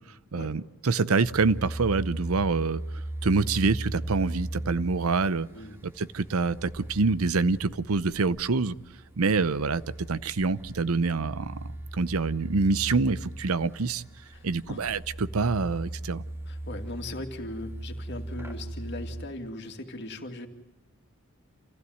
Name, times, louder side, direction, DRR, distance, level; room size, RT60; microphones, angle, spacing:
voice 1, 0.3-2.8 3.2-5.5 5.8-8.7 9.2-9.8 10.1-14.0 14.4-16.2, right 4 dB, 90° right, 17 dB, 0.7 m, -26 dB
sound 1, 1.2-19.3, right 1 dB, 10° right, 2.6 m, -38 dB
voice 2, 14.3-14.9 16.5-20.5, left 1 dB, 55° left, 4 dB, 2.5 m, -39 dB
27.5 x 16.0 x 9.4 m, 1.1 s
head